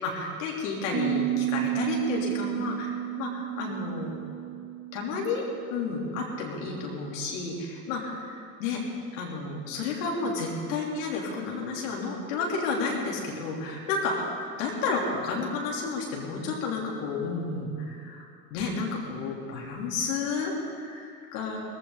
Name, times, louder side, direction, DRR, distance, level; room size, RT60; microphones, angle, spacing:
voice 1, 0.0-4.2 4.9-5.4 5.7-8.3 8.6-8.8 9.1-21.6, left 4 dB, 55° left, -2 dB, 3.5 m, -31 dB
Piano, 0.9-6.5, right 15 dB, 30° right, 0.7 m, -32 dB
18.5 x 15.5 x 4.1 m, 2.4 s
figure-of-eight pair, 75°, 46 cm